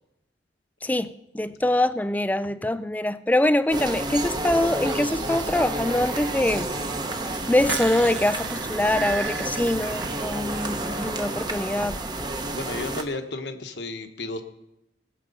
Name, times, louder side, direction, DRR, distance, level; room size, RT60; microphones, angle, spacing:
voice 1, 0.8-6.7 7.2-12.0, left 1 dB, 10° left, 0.4 m, -24 dB
sound 1, 3.7-13.0, right 2 dB, 25° right, 0.9 m, -30 dB
sound 2, 4.8-10.8, right 4 dB, 65° right, 1.2 m, -40 dB
sound 3, 7.4-10.5 10.8-11.2, right 5 dB, 90° right, 1.2 m, -34 dB
voice 2, 12.5-14.4, left 2 dB, 75° left, 1.2 m, -33 dB
20.0 x 7.6 x 5.4 m
head